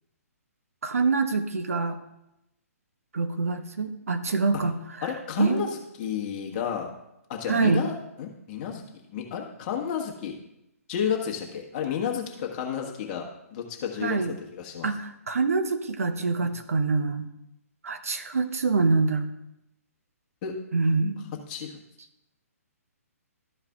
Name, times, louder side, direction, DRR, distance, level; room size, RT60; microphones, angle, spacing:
voice 1, 0.8-2.0 3.1-5.1 5.4-5.6 7.5-7.8 14.0-14.3 14.8-17.3 17.8-19.3 20.7-21.3, right 4 dB, 65° right, 8 dB, 0.9 m, -25 dB
voice 2, 5.0-6.9 7.3-8.8 9.1-10.3 10.9-14.2 14.5-14.9 16.4-16.5 20.4-20.6 21.5-21.8, left 8 dB, 30° left, 1 dB, 1.4 m, -31 dB
13.0 x 4.8 x 3.5 m, 0.85 s
figure-of-eight pair, 125°, 8 cm